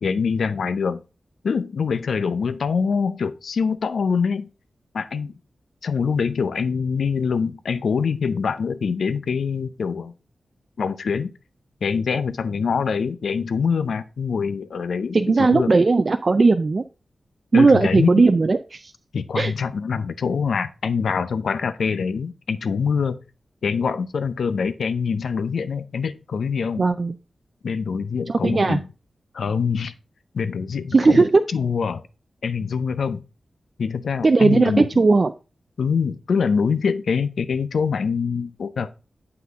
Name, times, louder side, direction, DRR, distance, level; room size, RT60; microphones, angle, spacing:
voice 1, 0.0-1.0 1.4-4.5 4.9-5.3 5.8-10.1 10.8-11.3 11.8-15.7 17.5-18.3 19.1-23.2 23.6-26.9 27.6-28.8 29.3-29.9 30.3-31.2 31.5-32.0 32.4-33.2 33.8-34.9 35.8-38.9, left 5 dB, 85° left, 13 dB, 0.6 m, -24 dB
voice 2, 15.1-16.8 17.5-18.9 19.4-19.5 26.8-27.1 28.3-28.8 30.9-31.4 34.2-35.3, right 3 dB, 40° right, 9 dB, 0.4 m, -17 dB
7.7 x 5.8 x 3.5 m, 0.31 s
wide cardioid pair, 135°, 0 cm